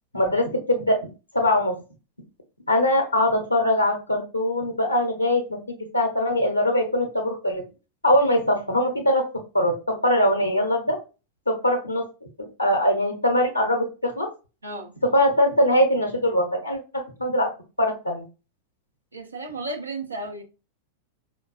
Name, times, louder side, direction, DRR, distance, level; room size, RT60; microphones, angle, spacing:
voice 1, 0.1-1.0 1.3-1.7 2.7-7.6 8.0-9.2 9.5-11.0 11.5-12.0 12.4-14.3 15.0-16.8 17.2-17.5 17.8-18.3, left 1 dB, 85° left, 0.7 m, -22 dB
voice 2, 14.6-14.9 19.1-20.4, right 2 dB, 80° right, 0.7 m, -33 dB
5.0 x 2.2 x 2.3 m
figure-of-eight pair, 90°, 0 cm